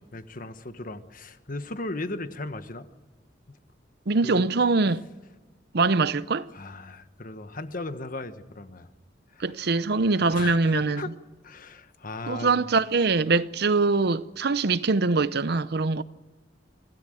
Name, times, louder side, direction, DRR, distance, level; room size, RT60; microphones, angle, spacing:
voice 1, 0.1-2.9 3.5-3.6 4.2-4.5 6.5-8.9 9.3-9.5 10.2-11.1 11.4-12.6, left 2 dB, 50° left, 1.3 m, -37 dB
voice 2, 4.1-5.0 5.7-6.5 9.4-11.0 12.3-16.0, right 3 dB, 65° right, 0.7 m, -23 dB
25.5 x 16.0 x 7.8 m
head